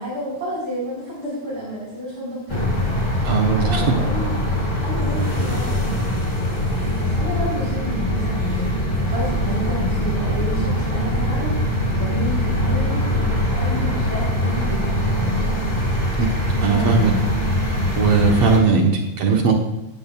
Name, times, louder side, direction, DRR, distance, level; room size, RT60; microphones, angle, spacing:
voice 1, 0.0-2.7 3.6-4.3 4.8-6.2 6.6-15.6 16.6-17.3, equal, 35° right, -8 dB, 4.9 m, -30 dB
sound 1, 2.5-18.6, left 1 dB, 15° left, 2.3 m, -22 dB
voice 2, 3.3-3.9 16.2-16.3 16.6-17.1 18.0-19.6, right 5 dB, 60° right, 1 dB, 1.9 m, -18 dB
18.5 x 12.5 x 2.3 m, 0.90 s
omnidirectional pair, 3.6 m